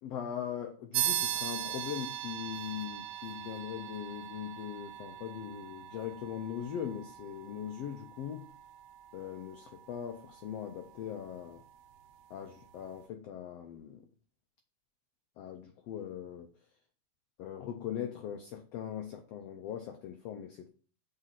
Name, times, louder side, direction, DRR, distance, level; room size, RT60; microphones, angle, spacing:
voice 1, 0.0-8.5 9.1-11.6 12.3-14.1 15.4-16.5 17.4-20.7, left 9 dB, 85° left, 1.4 m, -40 dB
sound 1, 0.9-10.9, right 11 dB, 90° right, 2.2 m, -39 dB
6.5 x 3.8 x 5.8 m
omnidirectional pair, 3.6 m